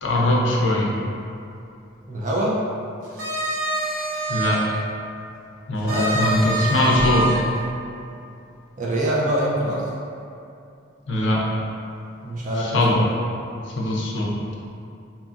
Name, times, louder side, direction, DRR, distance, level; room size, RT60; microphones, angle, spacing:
voice 1, 0.0-0.9 4.3-4.8 5.7-7.3 11.1-11.6 12.6-13.0 13.7-14.3, left 1 dB, 75° left, -3 dB, 0.4 m, -21 dB
voice 2, 2.1-2.6 5.8-6.2 6.5-6.6 8.8-9.8 12.2-13.2, right 1 dB, 40° right, -6 dB, 0.5 m, -24 dB
sound 1, 3.0-4.6 5.9-7.4, right 2 dB, 85° right, 0.9 m, -25 dB
2.7 x 2.5 x 2.4 m, 2.6 s
head